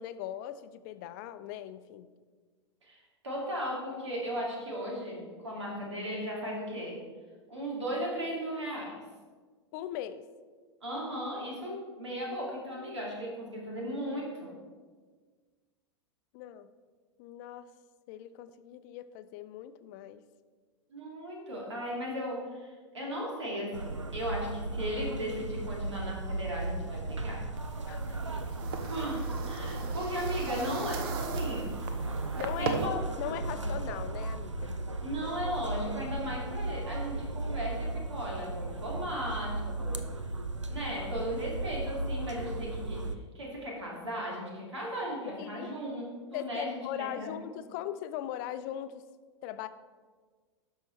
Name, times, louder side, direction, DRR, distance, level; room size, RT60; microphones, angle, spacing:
voice 1, 0.0-2.1 9.7-10.2 16.3-16.7 17.2-17.7 18.1-20.2 27.8-28.5 32.4-34.7 45.4-45.7 46.3-49.0 49.4-49.7, left 11 dB, 40° left, 12 dB, 0.5 m, -39 dB
voice 2, 3.2-7.0 7.5-9.0 10.8-14.6 20.9-27.4 28.9-31.9 32.6-32.9 33.5-33.6 35.0-40.0 40.7-43.0 43.3-46.1 46.3-47.3, equal, 70° right, -2 dB, 2.3 m, -36 dB
sound 1, 23.7-43.1, right 2 dB, 90° right, 0.5 m, -36 dB
sound 2, 27.6-32.9, right 5 dB, 50° right, 0.8 m, -39 dB
12.5 x 5.5 x 3.2 m, 1.5 s
figure-of-eight pair, 90°, 15 cm